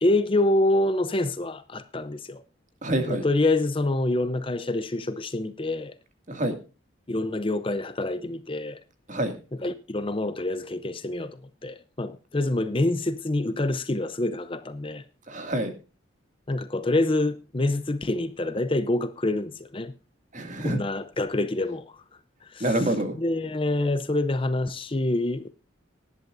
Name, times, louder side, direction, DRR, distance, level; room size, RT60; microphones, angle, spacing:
voice 1, 0.0-2.4 3.1-5.9 7.1-8.8 9.6-15.0 16.5-19.9 20.6-22.0 22.4-22.9 23.2-25.5, left 2 dB, 25° left, 0.6 m, -26 dB
voice 2, 2.8-3.3 6.3-6.5 9.1-9.4 15.3-15.7 20.3-20.8 22.6-23.2, right 1 dB, 35° right, 2.3 m, -26 dB
18.5 x 11.0 x 2.6 m
head